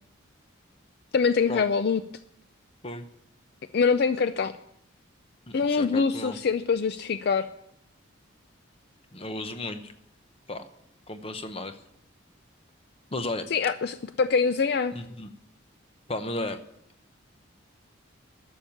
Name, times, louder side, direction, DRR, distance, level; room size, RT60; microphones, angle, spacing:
voice 1, 1.1-2.0 3.7-4.5 5.5-7.5 13.5-14.9, left 5 dB, 50° left, 12 dB, 0.4 m, -24 dB
voice 2, 5.5-6.4 9.1-9.9 10.5-10.6 11.1-11.8 13.1-13.5 14.9-15.3 16.1-16.6, left 2 dB, 30° left, 8 dB, 0.9 m, -34 dB
11.5 x 7.3 x 9.2 m, 0.77 s
head